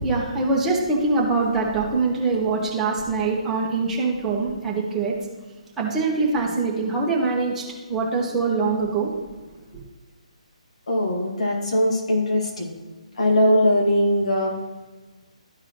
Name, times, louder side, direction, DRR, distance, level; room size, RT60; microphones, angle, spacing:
voice 1, 0.0-5.1 5.8-7.6 7.9-9.1, right 3 dB, 10° right, -4 dB, 1.6 m, -23 dB
voice 2, 10.9-12.7 13.2-14.6, equal, 70° left, -1 dB, 2.3 m, -20 dB
13.0 x 4.7 x 3.1 m, 1.3 s
figure-of-eight pair, 145°, 4 cm